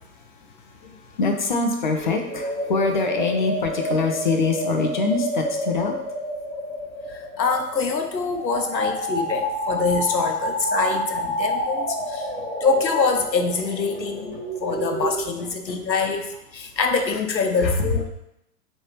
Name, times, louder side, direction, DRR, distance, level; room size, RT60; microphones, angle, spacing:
voice 1, 0.8-5.9 14.3-14.4 15.4-15.8, left 4 dB, 35° left, 3 dB, 0.4 m, -24 dB
sound 1, 1.9-15.2, equal, 10° left, 0.8 m, -29 dB
voice 2, 7.4-12.2 12.6-14.3 14.6-16.2 16.5-18.0, left 4 dB, 90° left, 5 dB, 0.8 m, -24 dB
4.4 x 3.3 x 2.9 m, 0.83 s
figure-of-eight pair, 115°, 50 cm